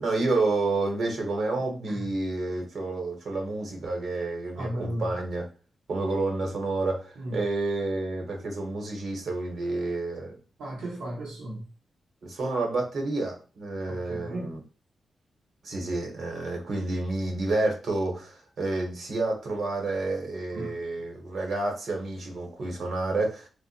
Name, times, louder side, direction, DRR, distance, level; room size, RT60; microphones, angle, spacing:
voice 1, 0.0-5.5 5.9-10.4 12.2-14.6 15.6-23.5, right 2 dB, 65° right, 1.3 m, -29 dB
voice 2, 4.6-5.1 7.2-7.4 10.6-11.7 13.9-14.5 20.5-20.8, right 1 dB, 90° right, 0.9 m, -35 dB
4.2 x 2.4 x 2.5 m
cardioid pair, 90°, 0 cm